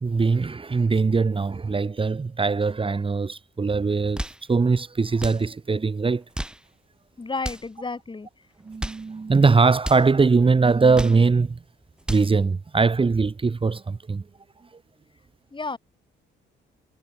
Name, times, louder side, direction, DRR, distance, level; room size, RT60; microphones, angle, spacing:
voice 1, 0.0-6.2 8.7-11.6 12.1-14.2, right 4 dB, 25° right, 1.9 m, -21 dB
sound 1, 4.0-4.5 5.1-5.5 6.2-6.7 7.3-7.7 8.6-9.1 9.8-10.1 10.7-11.3 11.8-12.4, right 1 dB, 5° right, 2.6 m, -33 dB
voice 2, 7.2-8.3 15.5-15.8, left 3 dB, 25° left, 5.3 m, -31 dB
cardioid pair, 90°, 20 cm